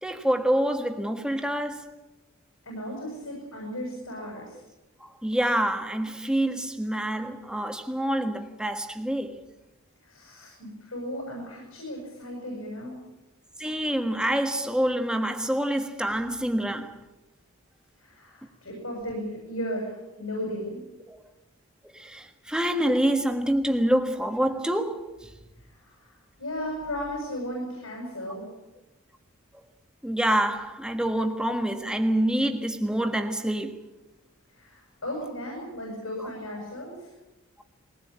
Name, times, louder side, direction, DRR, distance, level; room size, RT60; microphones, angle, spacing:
voice 1, 0.0-1.9 5.0-9.4 13.6-17.0 21.1-21.2 21.9-25.3 30.0-33.8 36.2-36.3, right 1 dB, 5° right, 1.5 m, -26 dB
voice 2, 2.6-4.6 10.0-13.0 18.0-20.8 25.7-28.5 34.5-37.1, equal, 80° left, 7.7 m, -35 dB
22.0 x 19.0 x 8.7 m
head